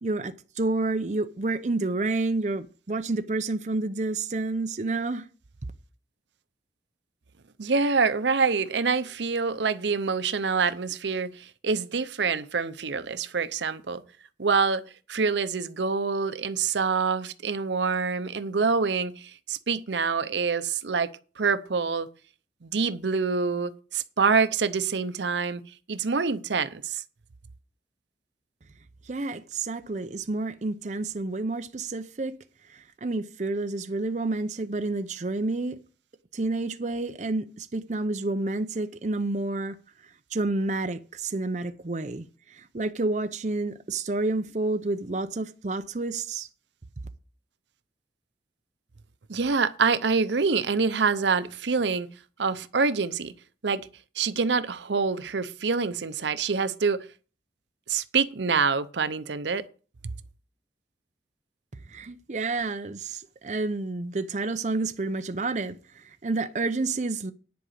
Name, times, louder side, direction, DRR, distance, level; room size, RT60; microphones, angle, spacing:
voice 1, 0.0-5.3 29.1-32.3 32.7-35.8 36.3-39.8 40.3-46.5 61.9-67.3, right 2 dB, 40° right, 0.6 m, -29 dB
voice 2, 7.6-14.0 14.4-14.8 15.1-22.1 22.6-25.6 25.9-27.0 49.3-52.1 52.4-53.3 53.6-53.8 54.2-57.1 57.9-59.6, right 5 dB, 80° right, 0.7 m, -26 dB
10.5 x 5.0 x 8.1 m
head